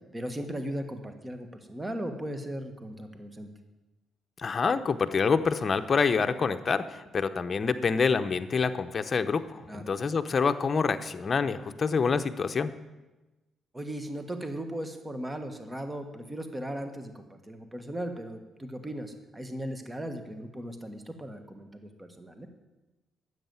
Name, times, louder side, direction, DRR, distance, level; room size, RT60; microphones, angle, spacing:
voice 1, 0.1-3.5 9.7-9.9 13.7-22.5, right 1 dB, 15° right, 7 dB, 1.5 m, -37 dB
voice 2, 4.4-12.7, left 5 dB, 40° left, 9 dB, 0.8 m, -27 dB
10.0 x 8.1 x 9.5 m, 1.1 s
cardioid pair, 90°, 0 cm